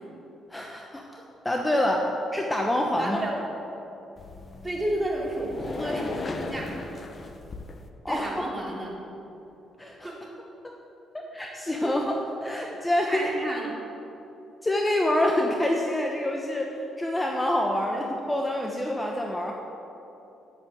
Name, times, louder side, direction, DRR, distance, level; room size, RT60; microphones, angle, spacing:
voice 1, 0.5-1.2 1.4-2.0 2.3-3.2 8.0-8.3 9.8-10.1 10.6-10.7 11.1-12.0 12.4-13.3 14.6-19.5, left 1 dB, 15° left, 1 dB, 1.1 m, -26 dB
voice 2, 3.0-3.4 4.6-6.8 8.1-8.9 10.0-10.2 11.8-12.0 13.1-13.7 17.8-18.0, right 1 dB, 15° right, -3 dB, 3.2 m, -31 dB
sound 1, 4.2-7.9, left 3 dB, 35° left, 1.1 m, -37 dB
10.5 x 8.6 x 7.7 m, 3.0 s
cardioid pair, 90°, 0 cm